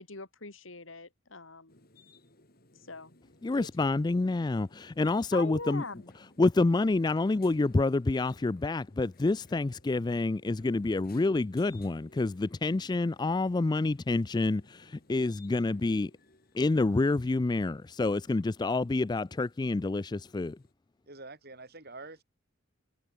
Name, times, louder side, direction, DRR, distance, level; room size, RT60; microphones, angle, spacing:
voice 1, 0.0-1.8 2.8-3.1 3.5-3.9 5.3-6.1, left 3 dB, 75° left, 3.1 m, -42 dB
sound 1, 1.7-20.7, left 2 dB, 50° left, 6.3 m, -61 dB
voice 2, 3.4-5.8 6.4-16.1 16.5-20.6, left 2 dB, 20° left, 0.3 m, -28 dB
voice 3, 21.1-22.2, right 3 dB, 50° right, 6.2 m, -46 dB
head